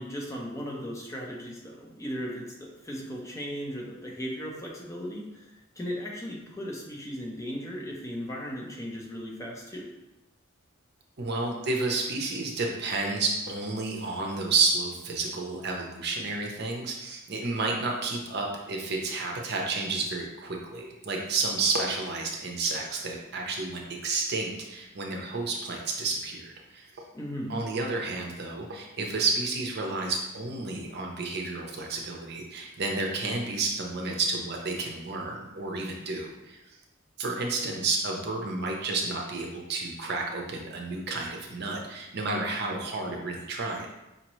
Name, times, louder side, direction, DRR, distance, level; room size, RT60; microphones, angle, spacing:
voice 1, 0.0-9.9 27.1-27.6, equal, 15° left, -2 dB, 0.7 m, -37 dB
voice 2, 11.2-26.9 27.5-36.6 37.2-43.9, right 3 dB, 55° right, 0 dB, 0.7 m, -31 dB
5.1 x 2.9 x 3.0 m, 0.99 s
head